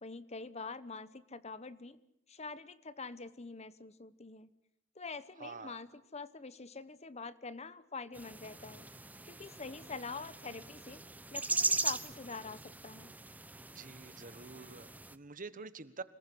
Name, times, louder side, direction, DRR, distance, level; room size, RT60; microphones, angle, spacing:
voice 1, 0.0-2.0 2.3-4.5 4.9-8.9 9.3-11.0 11.3-13.1, left 4 dB, 35° left, 15 dB, 1.1 m, -45 dB
voice 2, 5.4-5.8 13.7-16.0, right 4 dB, 40° right, 14 dB, 1.4 m, -47 dB
sound 1, 8.1-15.2, right 3 dB, 10° right, 1.0 m, -39 dB
27.0 x 20.0 x 10.0 m, 0.80 s
head